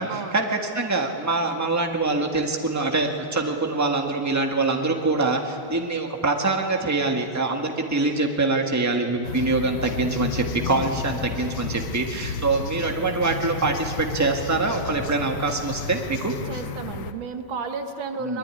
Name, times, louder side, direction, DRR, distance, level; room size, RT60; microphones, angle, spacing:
voice 1, 0.0-16.3 18.2-18.4, right 3 dB, 10° right, 2 dB, 1.6 m, -24 dB
sound 1, 9.2-17.1, left 6 dB, 80° left, 1.6 m, -32 dB
voice 2, 16.5-18.4, right 5 dB, 80° right, 7 dB, 2.1 m, -32 dB
22.0 x 21.0 x 9.8 m, 2.7 s
omnidirectional pair, 2.1 m